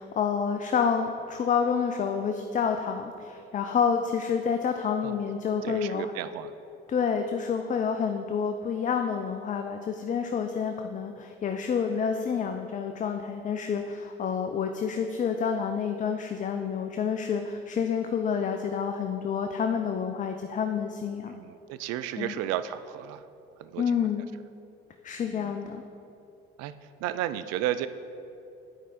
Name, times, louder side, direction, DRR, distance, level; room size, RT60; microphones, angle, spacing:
voice 1, 0.0-6.1 6.9-21.3 22.2-22.3 23.8-24.3 25.0-25.8, left 6 dB, 25° left, 6 dB, 0.4 m, -28 dB
voice 2, 5.6-6.5 21.3-23.2 23.6-23.8 25.3-25.5 26.6-26.7 27.0-27.9, right 12 dB, 60° right, 12 dB, 0.4 m, -33 dB
9.0 x 4.7 x 4.1 m, 2.7 s
hypercardioid pair, 55°, 29 cm